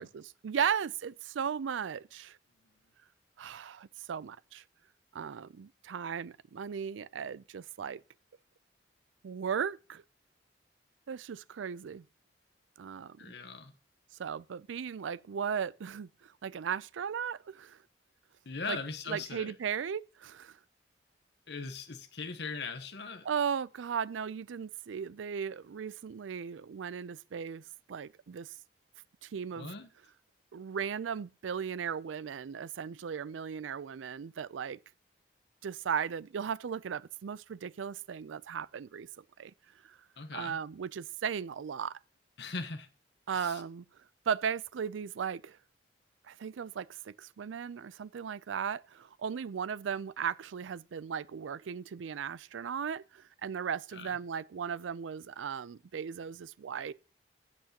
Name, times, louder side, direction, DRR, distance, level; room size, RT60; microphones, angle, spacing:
voice 1, 0.0-2.4 3.4-4.6 5.1-8.0 9.2-10.0 11.1-12.1 12.8-13.3 14.2-17.8 18.7-18.8 19.1-20.6 23.2-28.6 29.2-29.7 30.5-34.8 35.6-39.5 39.8-40.0 40.3-42.0 43.3-43.9 44.3-45.6 46.2-56.9, right 7 dB, 90° right, 0.4 m, -36 dB
voice 2, 13.2-13.7 18.4-19.5 21.5-23.3 29.6-29.9 40.2-40.6 42.4-42.9 43.3-43.6 53.9-54.1, left 4 dB, 65° left, 1.0 m, -40 dB
15.0 x 8.1 x 2.9 m
head